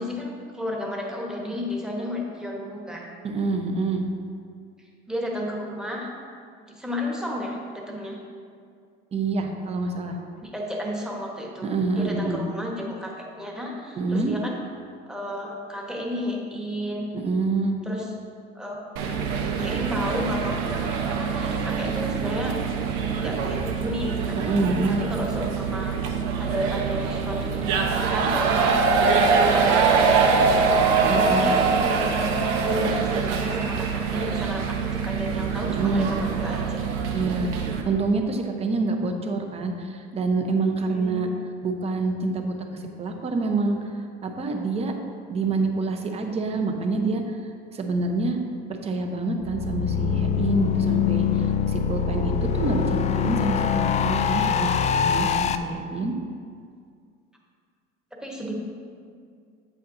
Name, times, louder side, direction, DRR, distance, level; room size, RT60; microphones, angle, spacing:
voice 1, 0.0-3.1 5.1-6.1 6.7-8.2 10.4-11.7 11.9-14.6 15.1-17.1 17.8-18.1 18.5-18.8 19.6-20.6 21.1-22.6 23.0-24.4 24.9-26.0 26.4-28.7 29.4-36.9 40.9-41.3 58.2-58.5, left 1 dB, 5° right, -2 dB, 1.2 m, -32 dB
voice 2, 3.2-4.1 9.1-10.2 11.6-12.4 14.0-14.3 17.1-17.7 24.3-25.1 31.1-31.6 35.6-36.1 37.1-37.5 37.9-41.3 41.6-43.9 44.2-44.9 45.3-47.4 47.7-48.4 48.7-56.1, right 3 dB, 30° right, 4 dB, 0.8 m, -27 dB
sound 1, 19.0-37.8, right 5 dB, 80° right, 0.9 m, -24 dB
sound 2, 49.4-55.5, left 7 dB, 35° left, 0.4 m, -23 dB
8.4 x 8.0 x 2.7 m, 2.2 s
cardioid pair, 120°, 21 cm